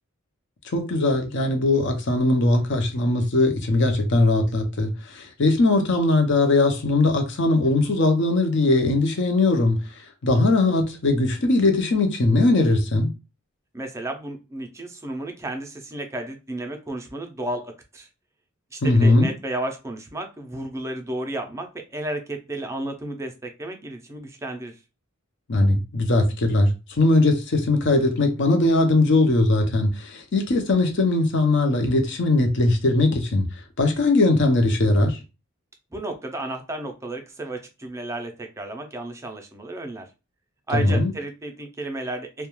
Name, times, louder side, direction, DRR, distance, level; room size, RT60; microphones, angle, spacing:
voice 1, 0.7-9.8 10.2-13.1 18.8-19.3 25.5-33.4 33.8-35.2 40.7-41.1, left 2 dB, 55° left, 0.6 m, -20 dB
voice 2, 13.7-18.1 18.7-24.8 35.9-40.1 40.7-42.5, right 1 dB, 15° right, 0.4 m, -32 dB
2.3 x 2.2 x 3.0 m
head